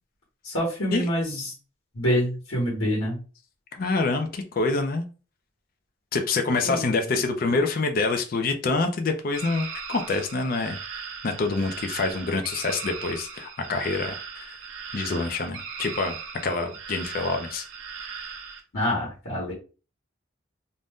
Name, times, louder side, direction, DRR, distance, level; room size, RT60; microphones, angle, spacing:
voice 1, 0.4-1.5 1.9-3.2 6.6-6.9 18.7-19.5, equal, 85° left, -4 dB, 1.1 m, -26 dB
voice 2, 3.7-5.1 6.1-10.8 11.2-14.6 14.9-16.2 16.4-17.7, left 3 dB, 45° left, 6 dB, 0.4 m, -26 dB
sound 1, 9.3-18.6, right 6 dB, 85° right, 0.6 m, -38 dB
2.6 x 2.1 x 3.4 m, 0.34 s
head